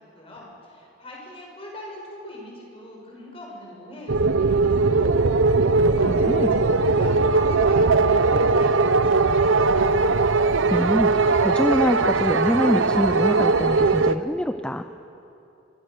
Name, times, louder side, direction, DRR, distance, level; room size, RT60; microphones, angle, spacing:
voice 1, 0.0-5.1 5.7-9.8, left 1 dB, 30° left, -1 dB, 6.0 m, -41 dB
sound 1, 4.1-14.2, right 3 dB, 85° right, 0.8 m, -19 dB
voice 2, 5.8-6.5 10.7-14.8, equal, 5° left, 8 dB, 0.4 m, -25 dB
25.0 x 24.5 x 6.6 m, 2.8 s
head